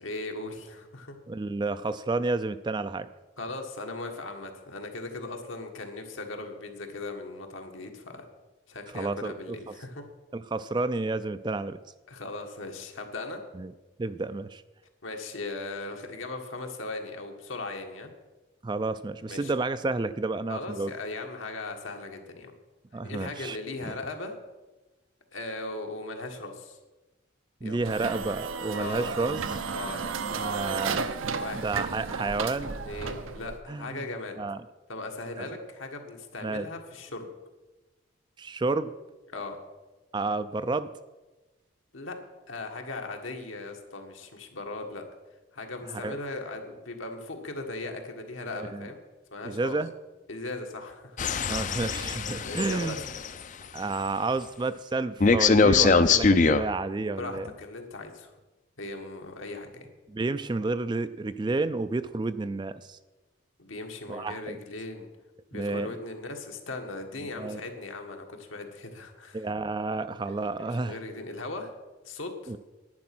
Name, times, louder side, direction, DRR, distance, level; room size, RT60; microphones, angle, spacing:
voice 1, 0.0-1.2 3.4-8.2 8.7-10.0 12.1-13.4 15.0-18.1 19.3-19.5 20.5-22.5 23.0-24.4 25.3-26.8 27.6-27.8 28.7-29.1 29.7-30.0 31.4-31.6 32.8-34.4 34.9-37.3 39.3-39.6 41.9-42.2 42.5-45.0 45.5-49.0 49.3-49.8 50.3-51.2 52.0-52.1 52.4-53.0 57.2-58.3 58.8-59.9 63.6-65.1 65.5-69.5 70.3-71.7 72.0-72.5, left 2 dB, 80° left, 3 dB, 1.7 m, -38 dB
voice 2, 1.3-3.1 8.9-9.3 10.3-11.8 13.5-13.7 14.0-14.6 18.6-20.9 22.9-23.6 23.8-23.9 27.6-29.6 30.3-31.1 31.5-33.1 33.7-34.0 34.4-34.6 35.4-35.5 36.4-36.7 38.4-38.9 40.1-40.9 45.9-46.2 48.5-48.9 49.4-49.9 51.5-53.0 53.7-57.5 60.1-63.0 64.1-64.6 65.5-65.9 67.4-67.6 69.3-71.0 72.5-72.6, right 3 dB, 20° right, 13 dB, 0.3 m, -30 dB
sound 1, 27.8-33.6, right 5 dB, 80° right, 0.7 m, -33 dB
sound 2, 51.2-53.3 55.2-56.6, left 4 dB, 40° left, 0.5 m, -22 dB
10.5 x 9.5 x 6.1 m, 1.2 s
head